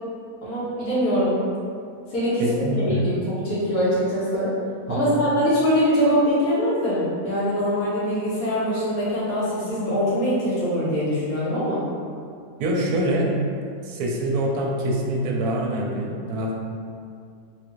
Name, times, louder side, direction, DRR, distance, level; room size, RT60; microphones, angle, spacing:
voice 1, 0.4-1.3 2.1-4.5 4.9-11.8, equal, 65° left, -9 dB, 1.5 m, -23 dB
voice 2, 2.4-3.1 4.9-5.2 12.6-13.3 13.8-16.5, right 1 dB, 75° right, -1 dB, 1.0 m, -25 dB
3.5 x 2.4 x 3.0 m, 2.3 s
omnidirectional pair, 1.7 m